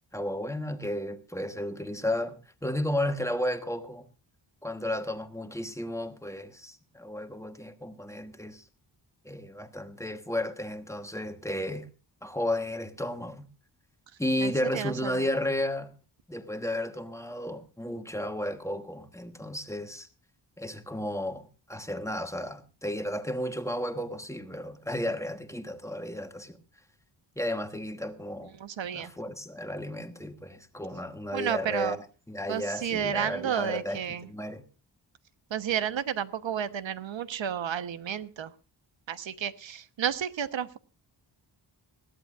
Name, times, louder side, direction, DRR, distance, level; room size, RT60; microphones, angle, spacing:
voice 1, 0.1-4.1 4.6-8.6 9.2-11.9 12.2-13.5 14.2-15.9 16.3-20.1 20.6-26.6 27.4-28.5 28.9-34.6, left 1 dB, 5° left, 1.2 m, -33 dB
voice 2, 14.4-15.3 28.5-29.1 31.3-32.0 32.5-34.3 35.5-38.5 39.1-40.8, right 8 dB, 85° right, 1.2 m, -32 dB
21.0 x 16.0 x 2.5 m
wide cardioid pair, 180°, 44 cm